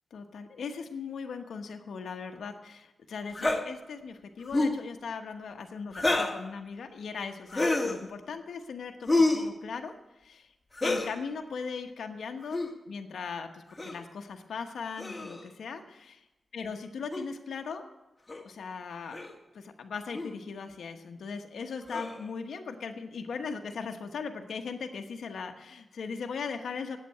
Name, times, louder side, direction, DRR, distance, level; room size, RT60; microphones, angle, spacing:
voice 1, 0.1-9.9 10.2-10.5 10.8-12.6 12.9-16.2 16.5-17.9 18.4-19.2 19.5-27.0, left 5 dB, 85° left, 5 dB, 1.1 m, -39 dB
sound 1, 3.3-3.6 4.4-4.8 5.9-6.4 7.5-8.0 9.1-9.5 10.7-11.1 12.4-12.7 13.8-14.0 15.0-15.4 17.1-17.2 18.3-18.4 19.1-19.3 20.1-20.3 21.9-22.3, left 2 dB, 20° left, 2.1 m, -28 dB
8.5 x 8.4 x 9.1 m, 1.0 s
cardioid pair, 80°, 0 cm